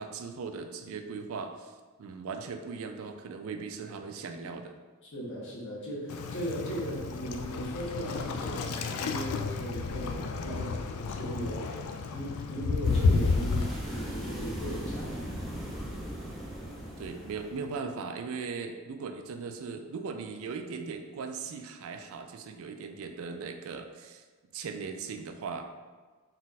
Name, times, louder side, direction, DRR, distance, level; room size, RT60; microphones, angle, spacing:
voice 1, 0.0-1.7 2.0-4.8 10.5-10.7 17.0-24.2 24.5-25.6, right 5 dB, 65° right, 6 dB, 0.3 m, -38 dB
voice 2, 5.0-11.7 12.1-15.4, equal, 55° left, -4 dB, 1.0 m, -38 dB
Waves surf, 6.1-13.7, left 4 dB, 80° left, 0.3 m, -31 dB
sound 1, 12.8-17.8, equal, ahead, 0.6 m, -38 dB
4.0 x 2.4 x 4.0 m, 1.4 s
head